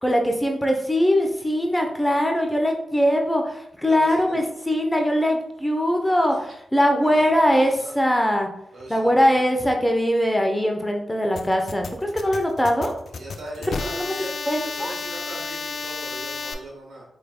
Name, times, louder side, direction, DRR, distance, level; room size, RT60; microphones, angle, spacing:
voice 1, 0.0-8.5 8.9-12.9 13.7-14.1 14.4-14.9, equal, 15° left, 3 dB, 0.8 m, -21 dB
voice 2, 3.8-4.4 6.3-6.4 7.0-7.9 8.7-9.5 13.1-14.3 14.6-17.0, right 2 dB, 80° right, -3 dB, 1.3 m, -39 dB
sound 1, 11.4-16.5, left 4 dB, 70° left, 0.4 m, -32 dB
4.5 x 3.2 x 2.2 m, 0.76 s
supercardioid pair, 40°, 0 cm